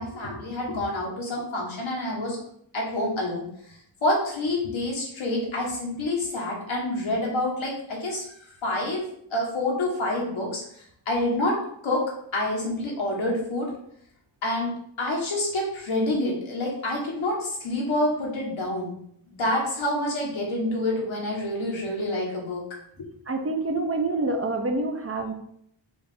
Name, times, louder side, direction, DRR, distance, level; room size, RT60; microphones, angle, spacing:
voice 1, 0.0-2.4 2.7-8.2 8.6-11.6 11.8-12.0 12.3-13.7 14.4-14.7 15.0-18.9 19.3-22.6 23.0-23.1, left 1 dB, 85° left, -3 dB, 1.5 m, -27 dB
voice 2, 23.3-25.3, right 2 dB, 30° right, 4 dB, 0.5 m, -27 dB
4.8 x 2.5 x 3.6 m, 0.70 s
cardioid pair, 70°, 46 cm